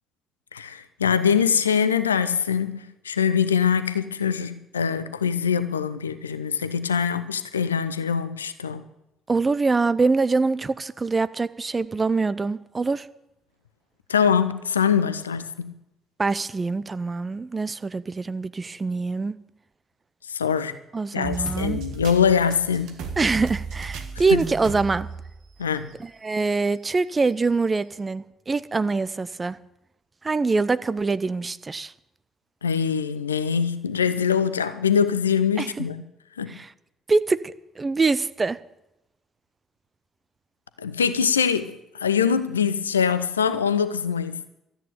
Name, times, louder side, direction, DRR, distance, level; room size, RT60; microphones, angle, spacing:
voice 1, 0.5-8.8 14.1-15.7 20.3-20.8 21.1-23.0 24.3-24.4 25.6-25.9 32.6-36.0 36.4-36.5 40.8-44.5, left 7 dB, 80° left, 0.6 m, -23 dB
voice 2, 9.3-13.1 16.2-19.4 20.9-21.8 23.2-25.1 26.0-29.6 30.2-31.9 35.6-35.8 36.5-36.7 37.1-38.6, right 4 dB, 25° right, 0.7 m, -24 dB
sound 1, 21.2-25.9 26.4-26.5 27.4-27.5, right 5 dB, 60° right, 1.5 m, -35 dB
13.0 x 9.0 x 8.0 m
figure-of-eight pair, 45°, 0 cm